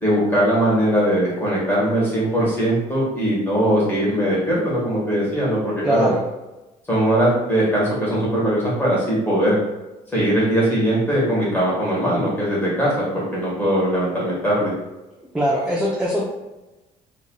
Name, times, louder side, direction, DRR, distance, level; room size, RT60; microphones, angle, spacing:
voice 1, 0.0-6.1 6.9-9.6 10.1-14.7, equal, 15° left, -7 dB, 1.4 m, -20 dB
voice 2, 5.8-6.2 15.3-16.3, equal, 5° right, -3 dB, 0.4 m, -21 dB
3.0 x 2.5 x 2.3 m, 1.0 s
cardioid pair, 135°, 15 cm